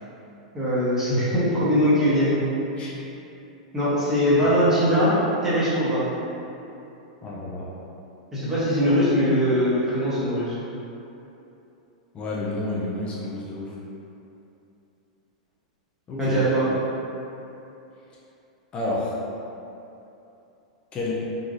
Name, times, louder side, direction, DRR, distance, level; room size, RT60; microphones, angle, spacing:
voice 1, 0.5-2.4 3.7-5.1 5.4-6.0 8.3-10.5 16.2-16.6, equal, 15° right, -11 dB, 1.1 m, -21 dB
voice 2, 7.2-7.7 12.1-13.7 16.1-16.4 18.7-19.2 20.9-21.1, left 2 dB, 25° left, -6 dB, 0.5 m, -30 dB
3.0 x 2.4 x 2.6 m, 2.8 s
hypercardioid pair, 120°, 4 cm